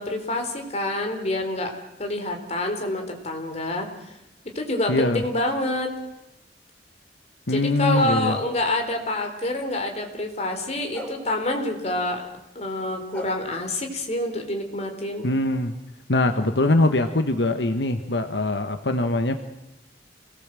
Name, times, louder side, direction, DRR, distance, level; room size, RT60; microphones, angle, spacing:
voice 1, 0.0-1.7 2.0-3.9 4.6-5.9 7.5-12.3 12.6-15.3, left 1 dB, 40° left, 4 dB, 3.8 m, -27 dB
voice 2, 4.9-5.2 7.5-8.4 15.2-15.7 16.1-19.4, left 2 dB, 75° left, 7 dB, 1.4 m, -22 dB
sound 1, 7.9-8.6 10.9-11.2 13.1-13.3, equal, 5° left, 4.7 m, -35 dB
28.0 x 19.0 x 7.7 m, 0.89 s
head